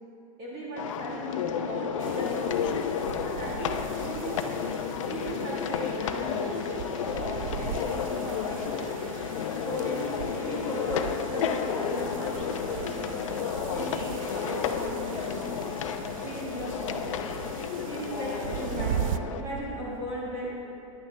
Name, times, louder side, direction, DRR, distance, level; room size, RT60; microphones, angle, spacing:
voice 1, 0.4-2.9 3.2-4.5 5.1-6.6 7.1-9.2 9.6-13.3 13.7-15.4 16.2-17.0 17.9-20.5, right 1 dB, 30° right, -6 dB, 1.6 m, -37 dB
sound 1, 0.8-19.4, left 8 dB, 65° left, 0.7 m, -32 dB
sound 2, 2.0-19.2, right 10 dB, 75° right, 0.4 m, -39 dB
15.0 x 10.5 x 3.3 m, 2.9 s
supercardioid pair, 180°, 18 cm